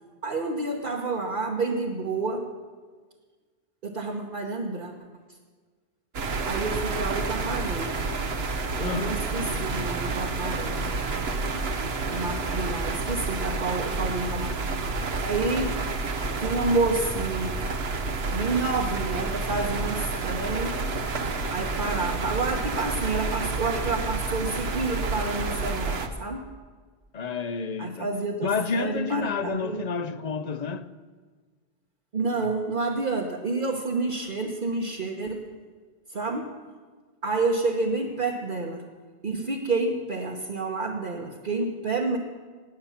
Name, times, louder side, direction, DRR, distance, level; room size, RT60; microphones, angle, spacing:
voice 1, 0.2-2.5 3.8-4.9 6.4-8.0 8.8-10.9 12.0-15.8 16.4-17.6 18.3-20.7 21.5-26.4 27.8-29.8 32.1-35.4 36.1-36.5 37.2-38.8 39.2-42.2, right 3 dB, 50° right, 1.3 m, -29 dB
sound 1, 6.1-26.1, right 3 dB, 75° right, 1.3 m, -29 dB
voice 2, 8.8-9.2 27.1-28.1 28.4-30.9, left 5 dB, 45° left, 0.7 m, -29 dB
18.5 x 8.8 x 7.2 m
omnidirectional pair, 1.1 m